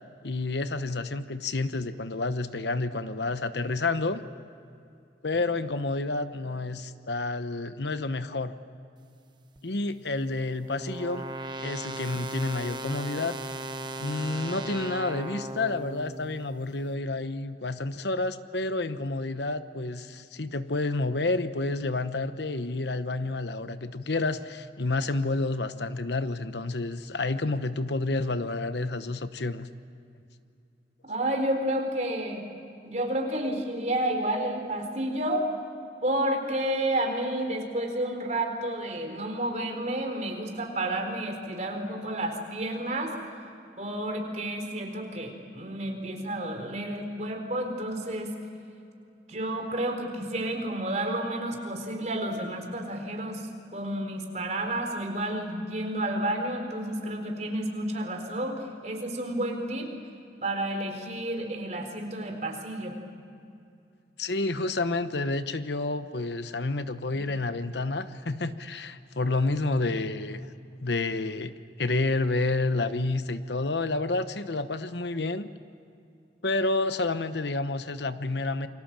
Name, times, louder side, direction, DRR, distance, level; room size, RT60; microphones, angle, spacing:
voice 1, 0.2-4.2 5.2-8.5 9.6-11.2 11.6-13.4 14.0-29.7 64.2-70.5 70.8-71.5 71.8-75.5 76.4-78.7, left 2 dB, 70° left, 11 dB, 1.0 m, -29 dB
sound 1, 9.6-16.7, right 2 dB, 25° right, 1.1 m, -38 dB
voice 2, 31.0-32.4 32.8-35.5 36.0-43.1 43.8-48.3 49.3-59.9 60.4-63.0, right 1 dB, 40° right, 3 dB, 4.2 m, -30 dB
28.5 x 25.0 x 7.5 m, 2.5 s
head